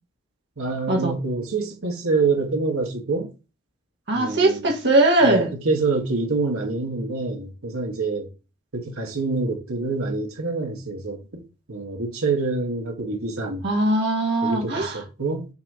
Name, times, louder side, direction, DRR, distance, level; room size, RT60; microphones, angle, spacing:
voice 1, 0.6-3.3 4.1-4.7 5.2-8.3 8.7-11.4 11.7-13.7 14.4-15.5, right 3 dB, 70° right, 1.5 m, -26 dB
voice 2, 4.1-5.5 13.6-15.0, right 2 dB, 50° right, 1.4 m, -20 dB
6.8 x 2.8 x 4.9 m
head